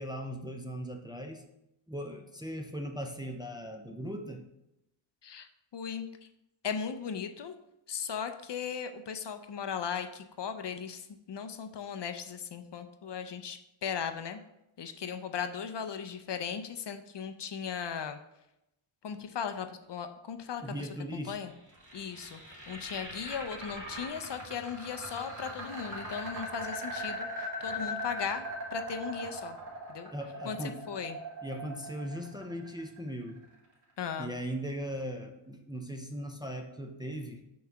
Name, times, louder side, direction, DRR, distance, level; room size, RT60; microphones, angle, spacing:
voice 1, 0.0-1.4 1.9-4.4 20.6-21.4 30.1-30.8 31.4-33.4 34.2-37.4, equal, 10° right, 3 dB, 0.4 m, -38 dB
voice 2, 5.2-6.1 6.6-7.6 7.9-14.4 14.8-18.2 19.0-21.5 21.9-28.4 28.7-29.6 29.9-30.1 30.4-31.2 34.0-34.3, left 7 dB, 60° left, 8 dB, 0.5 m, -37 dB
sound 1, 21.5-33.5, equal, 35° right, 2.0 m, -40 dB
5.7 x 3.1 x 5.7 m, 0.86 s
wide cardioid pair, 110°, 50 cm